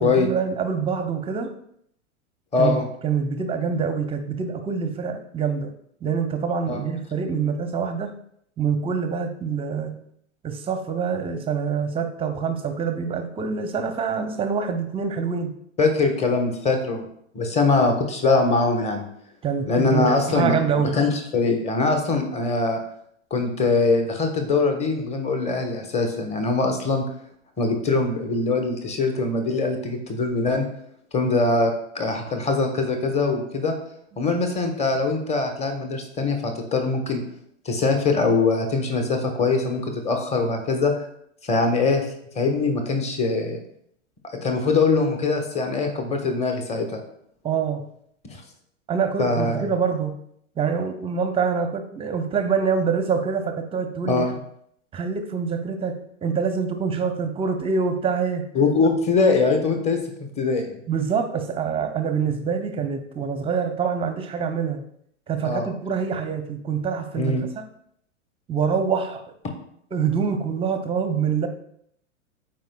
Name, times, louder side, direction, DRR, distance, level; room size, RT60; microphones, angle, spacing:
voice 1, 0.0-1.5 2.6-5.7 6.0-8.2 8.6-10.0 10.4-15.5 19.4-21.0 47.4-47.9 48.9-50.2 50.6-54.3 54.9-58.5 60.9-64.8 65.3-67.5 68.5-69.4 69.9-71.5, right 6 dB, 15° right, 7 dB, 0.6 m, -25 dB
voice 2, 2.5-2.9 6.7-6.8 15.8-17.0 17.3-19.1 19.7-20.6 20.9-22.8 23.3-27.0 27.6-30.6 31.1-33.7 34.2-37.2 37.6-41.0 41.4-42.1 42.3-43.6 44.2-47.0 48.3-48.4 49.2-49.6 54.1-54.3 58.5-60.0 60.4-60.8 65.4-65.7 67.2-67.4, left 3 dB, 15° left, 5 dB, 1.1 m, -22 dB
13.0 x 4.7 x 2.3 m, 0.70 s
hypercardioid pair, 105°, 38 cm